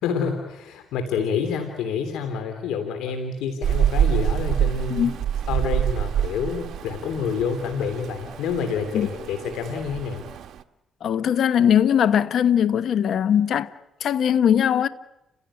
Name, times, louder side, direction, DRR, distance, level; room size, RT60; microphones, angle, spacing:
voice 1, 0.0-5.1 5.5-10.2, left 6 dB, 90° left, 3.1 m, -28 dB
Rain, 3.6-10.6, right 10 dB, 70° right, 1.3 m, -26 dB
voice 2, 11.0-13.7 14.0-14.9, left 9 dB, 65° left, 1.1 m, -20 dB
30.0 x 16.5 x 9.9 m
cardioid pair, 90°, 0 cm